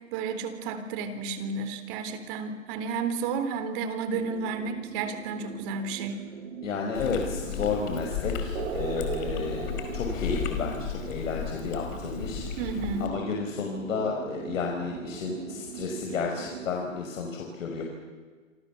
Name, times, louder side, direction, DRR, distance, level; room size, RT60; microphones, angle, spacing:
voice 1, 0.1-6.3 12.6-13.1, right 4 dB, 40° right, 10 dB, 4.0 m, -32 dB
sound 1, 4.1-16.7, right 10 dB, 60° right, 2.0 m, -40 dB
voice 2, 6.6-12.7 13.0-17.8, left 4 dB, 70° left, 1 dB, 5.6 m, -32 dB
Chewing mastication, 6.9-13.1, left 8 dB, 40° left, 4.8 m, -34 dB
28.0 x 27.5 x 7.2 m, 1.5 s
hypercardioid pair, 140°, 40 cm